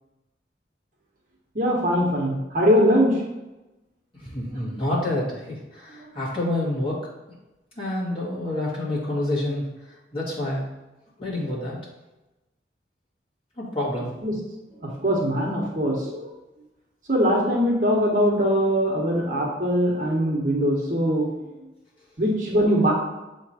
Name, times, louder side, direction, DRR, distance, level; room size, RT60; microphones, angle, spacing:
voice 1, 1.5-3.2 14.2-14.3 14.8-16.3 17.1-21.3 22.2-22.9, equal, 45° right, -3 dB, 1.3 m, -21 dB
voice 2, 4.2-7.0 7.8-9.6 10.1-10.7 11.2-11.8 13.6-14.2, left 1 dB, 30° left, -7 dB, 1.9 m, -28 dB
7.2 x 3.2 x 4.3 m, 1.0 s
head